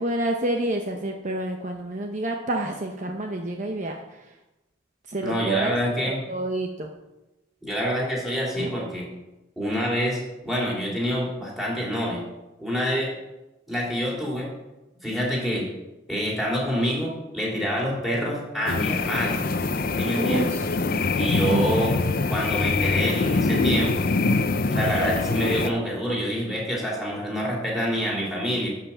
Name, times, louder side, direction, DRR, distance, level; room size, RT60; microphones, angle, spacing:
voice 1, 0.0-4.2 5.1-5.7 6.0-6.9 8.6-8.7 20.1-20.7 21.5-21.8, right 1 dB, 40° right, 3 dB, 0.8 m, -28 dB
voice 2, 5.2-6.2 7.6-9.1 9.6-12.2 12.6-13.1 13.7-14.5 15.0-15.7 16.1-19.4 20.0-20.5 21.2-22.0 22.3-24.1 24.7-28.7, equal, ahead, -4 dB, 3.5 m, -27 dB
sound 1, 18.7-25.7, left 3 dB, 50° left, 0.6 m, -24 dB
11.5 x 5.7 x 7.2 m, 1.0 s
head